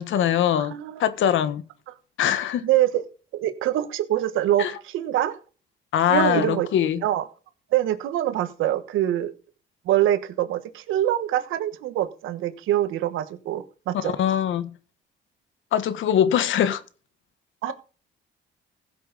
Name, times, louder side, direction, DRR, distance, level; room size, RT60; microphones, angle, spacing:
voice 1, 0.0-0.7 1.0-1.6 2.2-2.7 4.6-4.7 5.9-7.0 13.9-14.7 15.7-16.8, left 10 dB, 75° left, 1.3 m, -22 dB
voice 2, 0.5-1.0 2.6-3.0 3.3-5.4 6.1-6.7 7.0-7.3 7.7-9.3 9.8-14.1 17.6-17.7, right 12 dB, 90° right, 1.4 m, -24 dB
16.0 x 7.6 x 4.1 m
cardioid pair, 90°, 20 cm